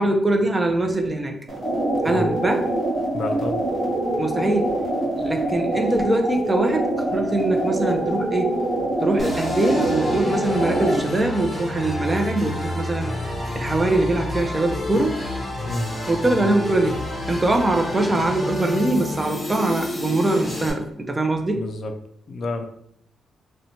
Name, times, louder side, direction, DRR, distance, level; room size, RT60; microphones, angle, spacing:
voice 1, 0.0-1.4 2.0-2.7 4.2-4.8 5.2-8.7 9.0-13.1 13.5-15.2 16.1-21.7, right 2 dB, 25° right, 4 dB, 0.4 m, -22 dB
sound 1, 1.5-11.1, right 1 dB, 55° right, 1.2 m, -25 dB
voice 2, 3.1-3.6 15.6-15.9 21.5-21.9 22.3-22.6, left 2 dB, 55° left, 6 dB, 0.4 m, -29 dB
sound 2, 9.2-20.7, left 1 dB, 20° left, 0.7 m, -30 dB
2.6 x 2.1 x 2.8 m, 0.69 s
cardioid pair, 85°, 0 cm